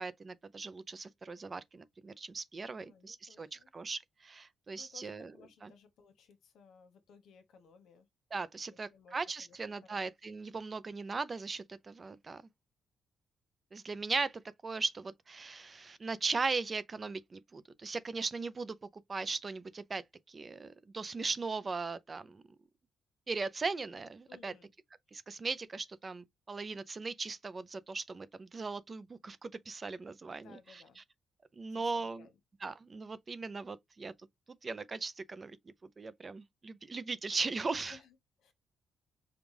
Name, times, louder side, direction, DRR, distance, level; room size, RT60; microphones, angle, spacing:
voice 1, 0.0-5.3 5.6-5.7 8.3-12.4 13.7-18.8 19.1-20.0 20.3-22.4 23.3-24.5 25.1-30.8 31.6-32.3 32.6-34.1 34.6-35.6 36.0-38.0, right 4 dB, 30° right, 0.5 m, -38 dB
voice 2, 2.8-3.7 4.7-8.1 8.7-10.1 24.3-24.7 30.3-31.0 31.7-32.4 37.8-38.5, left 5 dB, 75° left, 1.2 m, -60 dB
5.2 x 2.3 x 3.2 m
cardioid pair, 130°, 0 cm